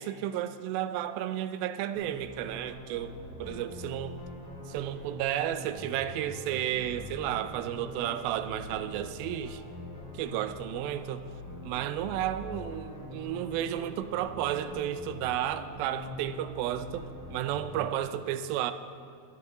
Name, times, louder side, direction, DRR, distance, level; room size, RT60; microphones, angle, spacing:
voice 1, 0.0-3.1 3.4-4.2 4.7-9.6 10.1-11.2 11.6-18.7, right 11 dB, 85° right, 11 dB, 2.3 m, -32 dB
sound 1, 1.9-18.0, left 1 dB, 15° right, 3.4 m, -43 dB
21.5 x 9.7 x 3.0 m, 2.2 s
omnidirectional pair, 4.3 m